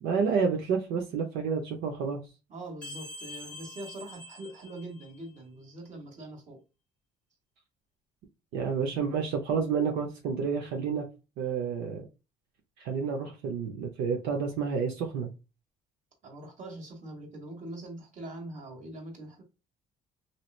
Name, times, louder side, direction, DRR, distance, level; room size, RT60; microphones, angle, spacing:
voice 1, 0.0-2.2 8.5-11.0 11.4-12.0 12.8-15.3, right 5 dB, 85° right, 0.7 m, -29 dB
voice 2, 2.5-6.6 16.2-19.4, right 1 dB, 45° right, 1.4 m, -43 dB
sound 1, 2.8-5.4, left 1 dB, 5° left, 0.7 m, -45 dB
3.1 x 2.8 x 2.4 m
cardioid pair, 110°, 17 cm